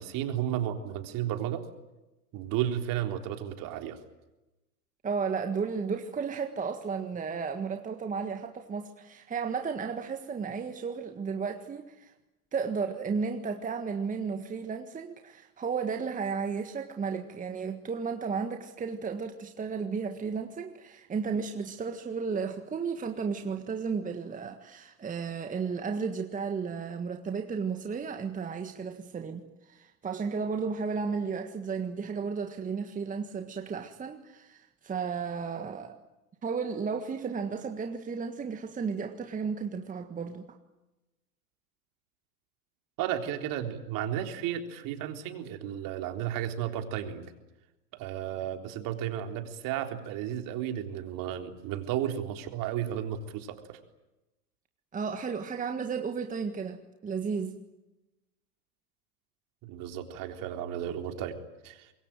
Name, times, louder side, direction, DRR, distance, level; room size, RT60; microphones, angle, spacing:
voice 1, 0.0-1.7 2.3-4.0 43.0-47.3 47.9-53.8 59.6-61.9, right 10 dB, 45° right, 5 dB, 3.9 m, -33 dB
voice 2, 5.0-12.1 12.5-36.0 36.4-40.5 54.9-57.6, right 5 dB, 15° right, 6 dB, 1.7 m, -33 dB
26.0 x 22.0 x 9.1 m, 1.0 s
hypercardioid pair, 110°, 46 cm